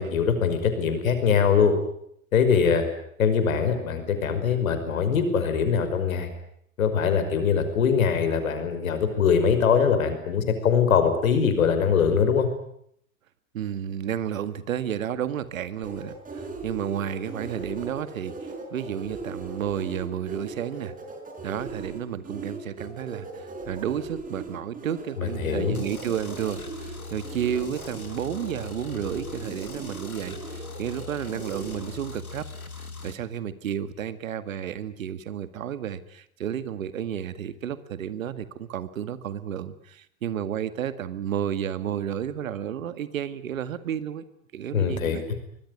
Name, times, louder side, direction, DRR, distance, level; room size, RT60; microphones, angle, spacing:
voice 1, 0.0-1.7 2.3-2.9 3.2-6.3 6.8-12.5 25.2-25.8 44.7-45.3, left 6 dB, 70° left, 9 dB, 5.6 m, -22 dB
voice 2, 13.5-20.9 21.4-32.5 32.8-44.2 44.5-45.2, right 9 dB, 70° right, 13 dB, 2.0 m, -32 dB
sound 1, 15.8-31.9, right 3 dB, 20° right, 5.5 m, -39 dB
sound 2, 25.7-33.1, left 4 dB, 90° left, 2.6 m, -40 dB
24.5 x 21.5 x 9.8 m, 0.72 s
figure-of-eight pair, 90°, 42 cm